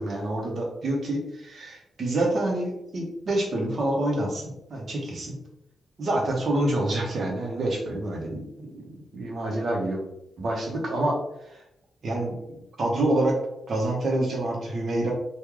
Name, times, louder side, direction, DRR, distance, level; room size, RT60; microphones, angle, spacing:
voice 1, 0.0-5.4 6.0-8.5 8.7-8.9 9.1-10.0 10.4-11.2 12.0-12.3 12.8-13.4 13.7-15.1, right 1 dB, 60° right, 0 dB, 1.1 m, -27 dB
3.1 x 2.6 x 3.7 m, 0.84 s
cardioid pair, 90°, 0 cm